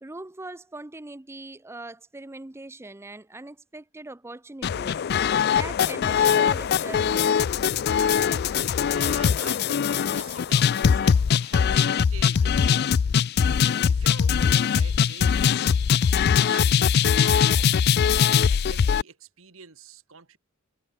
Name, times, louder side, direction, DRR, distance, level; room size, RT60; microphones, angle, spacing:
voice 1, 0.0-5.0 5.5-7.3, right 2 dB, 10° right, 0.5 m, -41 dB
sound 1, 4.6-19.0, left 7 dB, 50° left, 0.3 m, -21 dB
voice 2, 7.9-13.3 13.6-15.8 16.5-20.4, right 5 dB, 70° right, 2.0 m, -46 dB
head